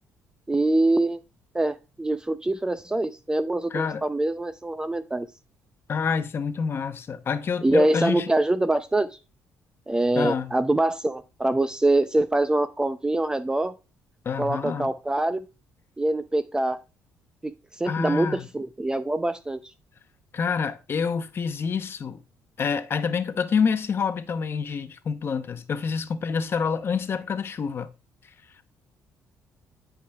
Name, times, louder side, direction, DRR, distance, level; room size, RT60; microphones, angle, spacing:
voice 1, 0.5-1.2 1.5-5.3 7.6-9.1 9.9-13.7 14.4-15.4 16.0-16.8 17.4-17.5 17.8-19.6, right 2 dB, 15° right, 0.5 m, -24 dB
voice 2, 3.7-4.0 5.9-8.3 10.2-10.5 14.2-14.9 17.9-18.5 20.3-22.2 22.6-27.9, left 6 dB, 45° left, 0.8 m, -27 dB
11.5 x 4.9 x 2.3 m
cardioid pair, 85°, 6 cm